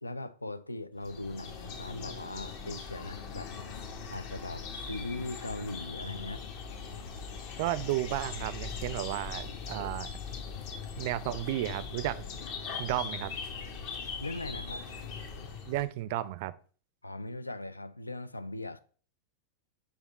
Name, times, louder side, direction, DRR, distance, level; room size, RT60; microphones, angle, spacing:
voice 1, 0.0-3.5 4.1-6.4 14.2-14.9 17.0-18.8, left 2 dB, 80° left, 0.3 m, -39 dB
sound 1, 1.0-15.9, left 5 dB, 45° left, 1.1 m, -40 dB
voice 2, 7.6-10.1 11.0-12.2 12.8-13.4 15.7-16.5, right 14 dB, 50° right, 0.4 m, -33 dB
5.2 x 4.9 x 4.1 m
figure-of-eight pair, 90°, 0 cm